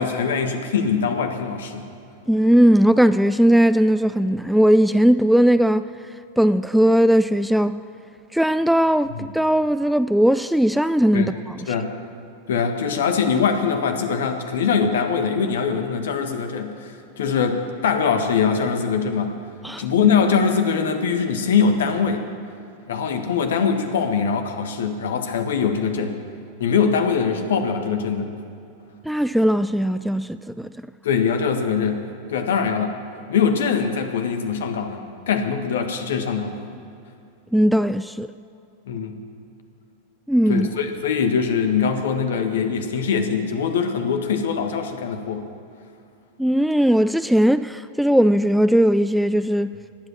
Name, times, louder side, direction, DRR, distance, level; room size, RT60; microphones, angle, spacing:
voice 1, 0.0-1.9 9.1-9.2 11.1-11.3 11.7-11.9 12.5-19.3 19.8-22.3 22.9-26.1 26.6-28.3 31.0-32.0 32.3-32.9 33.3-36.5 38.9-39.2 40.5-45.4, left 6 dB, 60° left, 1.5 m, -22 dB
voice 2, 2.3-5.9 6.4-7.8 8.3-11.8 19.6-19.8 29.1-30.7 37.5-38.3 40.3-40.7 46.4-49.8, equal, ahead, 0.3 m, -18 dB
19.5 x 8.1 x 7.5 m
figure-of-eight pair, 90°, 0 cm